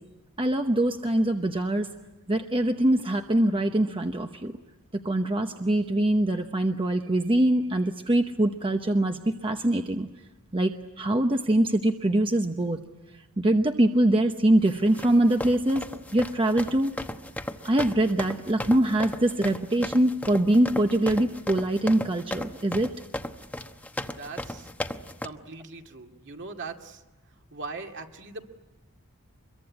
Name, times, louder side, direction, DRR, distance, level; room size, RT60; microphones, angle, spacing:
voice 1, 0.4-1.9 2.3-4.5 5.0-10.1 10.5-12.8 13.4-15.9 16.1-16.9 17.6-22.9, right 1 dB, 25° right, 5 dB, 0.9 m, -23 dB
sound 1, 14.7-25.3, left 1 dB, 5° left, 1.0 m, -36 dB
voice 2, 24.1-24.7 25.2-27.0 27.5-28.5, right 4 dB, 55° right, 3 dB, 2.3 m, -40 dB
25.5 x 22.5 x 9.6 m, 1.1 s
head